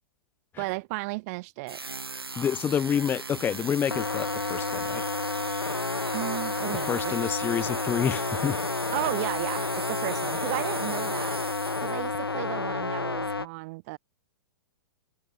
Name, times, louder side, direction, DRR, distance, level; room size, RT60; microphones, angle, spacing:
voice 1, 0.6-1.8 6.1-7.3 8.9-11.4 11.8-14.0, right 26 dB, 40° right, 2.5 m, -34 dB
sound 1, 1.7-12.2, right 4 dB, 80° right, 4.6 m, -38 dB
voice 2, 2.4-5.0 6.9-8.6, left 8 dB, 15° left, 0.9 m, -28 dB
sound 2, 3.9-13.5, left 4 dB, 85° left, 1.3 m, -30 dB
figure-of-eight pair, 110°, 12 cm